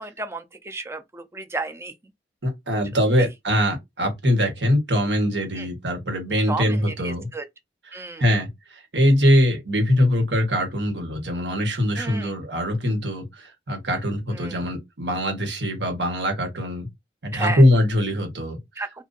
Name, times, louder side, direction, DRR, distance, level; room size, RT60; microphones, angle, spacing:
voice 1, 0.0-1.9 3.2-3.3 5.6-5.7 6.5-7.4 7.9-8.2 12.0-12.3 14.3-14.6 17.3-17.6 18.8-19.0, right 3 dB, 15° right, 0.5 m, -32 dB
voice 2, 2.4-7.3 8.2-16.9 17.2-18.6, equal, 90° right, 1.5 m, -22 dB
2.7 x 2.6 x 3.9 m
head